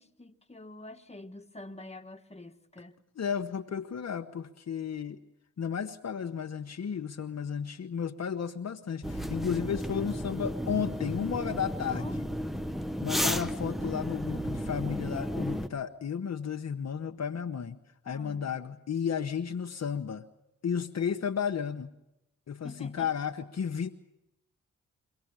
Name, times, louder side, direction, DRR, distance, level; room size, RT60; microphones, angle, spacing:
voice 1, 0.0-2.9 11.8-12.1 18.0-18.5 22.6-23.1, left 2 dB, 20° left, 5 dB, 1.7 m, -46 dB
voice 2, 3.2-5.2 5.6-12.3 13.0-17.8 18.0-20.3 20.6-21.9 22.5-23.9, left 7 dB, 50° left, 5 dB, 1.0 m, -33 dB
sound 1, 9.0-15.7, equal, ahead, 1.0 m, -33 dB
23.5 x 17.0 x 8.9 m, 0.90 s
hypercardioid pair, 40°, 33 cm